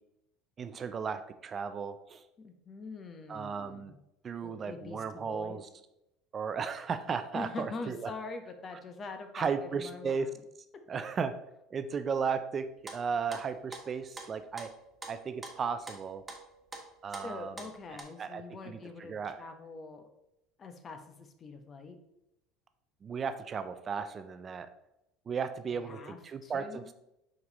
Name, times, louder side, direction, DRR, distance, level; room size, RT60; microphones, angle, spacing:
voice 1, 0.6-2.2 3.3-3.9 4.2-5.7 6.3-8.1 9.3-10.3 10.9-11.3 11.7-14.7 15.1-16.2 17.0-17.5 18.2-19.4 23.0-24.7 25.3-26.8, right 6 dB, 35° right, 10 dB, 0.4 m, -35 dB
voice 2, 2.4-4.0 4.4-5.6 7.3-10.4 17.2-20.1 20.6-22.0 25.8-26.9, left 3 dB, 35° left, 7 dB, 0.9 m, -44 dB
sound 1, 12.9-18.0, right 2 dB, 15° right, 1.4 m, -46 dB
5.2 x 4.7 x 4.0 m, 0.86 s
hypercardioid pair, 85°, 0 cm